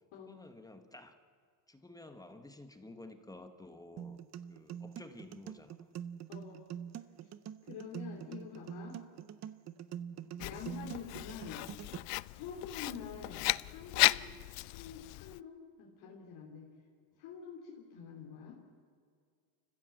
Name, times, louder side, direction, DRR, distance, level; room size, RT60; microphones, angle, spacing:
voice 1, 0.1-1.2 1.7-5.9 10.1-10.3, left 2 dB, 5° left, 8 dB, 1.0 m, -52 dB
sound 1, 4.0-12.0, right 9 dB, 35° right, 0.6 m, -44 dB
voice 2, 6.3-6.7 7.6-9.0 10.4-11.7 12.3-14.3 14.6-16.7 17.2-18.6, left 7 dB, 70° left, -1 dB, 3.1 m, -47 dB
Writing, 10.4-15.4, left 23 dB, 90° left, 0.6 m, -35 dB
29.5 x 15.0 x 7.6 m, 2.1 s
cardioid pair, 160°, 50 cm